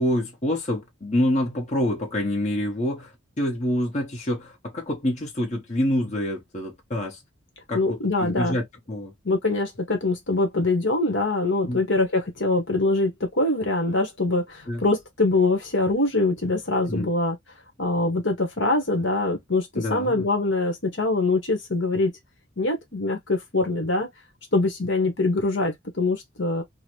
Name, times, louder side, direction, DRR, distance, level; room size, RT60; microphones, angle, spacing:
voice 1, 0.0-7.2 7.7-9.1 11.7-11.8 14.7-14.8 16.9-17.1 19.7-20.3, left 1 dB, 35° left, 1.0 m, -27 dB
voice 2, 7.7-8.6 9.2-17.4 17.8-22.1 22.6-24.1 24.5-26.6, left 2 dB, 55° left, 1.1 m, -23 dB
3.7 x 2.1 x 3.1 m
head